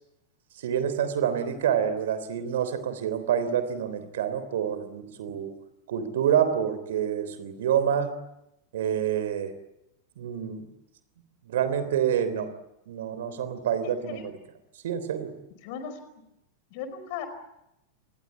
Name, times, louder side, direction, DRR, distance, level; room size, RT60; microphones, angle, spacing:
voice 1, 0.6-5.5 5.9-8.1 8.7-9.5 10.2-10.6 11.5-12.5 12.9-14.3 14.8-15.3, right 9 dB, 60° right, 12 dB, 3.5 m, -27 dB
voice 2, 13.8-14.2 15.6-16.0 16.7-17.3, left 7 dB, 50° left, 11 dB, 4.9 m, -37 dB
26.5 x 21.0 x 8.6 m, 0.86 s
figure-of-eight pair, 90°, 0 cm